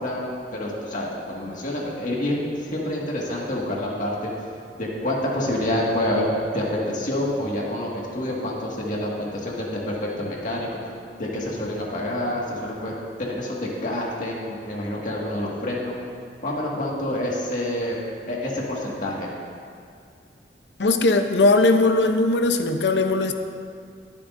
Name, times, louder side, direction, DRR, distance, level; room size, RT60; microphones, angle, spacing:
voice 1, 0.0-4.3 4.8-10.9 11.2-15.9 16.4-18.0 18.3-19.3, left 1 dB, 50° left, -3 dB, 1.9 m, -27 dB
voice 2, 20.8-23.3, left 2 dB, 75° left, 7 dB, 0.7 m, -19 dB
21.0 x 8.5 x 2.6 m, 2.3 s
head